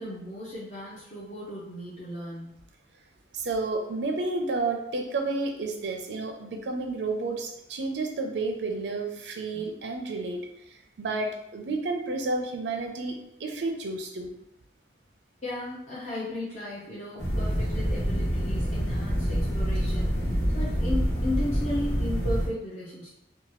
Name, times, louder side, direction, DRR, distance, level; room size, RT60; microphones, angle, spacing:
voice 1, 0.0-2.6 9.5-9.6 15.4-20.3 20.5-23.1, left 1 dB, 40° left, -8 dB, 0.5 m, -35 dB
voice 2, 3.3-10.4 10.7-14.3, right 3 dB, 80° right, 4 dB, 0.5 m, -31 dB
sound 1, 17.2-22.5, equal, 85° left, 0.9 m, -26 dB
2.8 x 2.2 x 3.0 m, 0.82 s
head